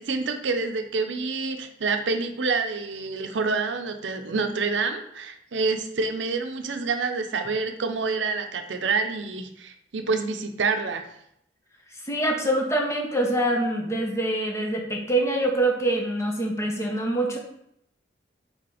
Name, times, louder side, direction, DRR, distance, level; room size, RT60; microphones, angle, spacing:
voice 1, 0.0-11.0, right 4 dB, 85° right, 7 dB, 0.6 m, -27 dB
voice 2, 12.0-17.4, right 1 dB, 15° left, 1 dB, 0.9 m, -25 dB
5.0 x 3.9 x 4.9 m, 0.76 s
head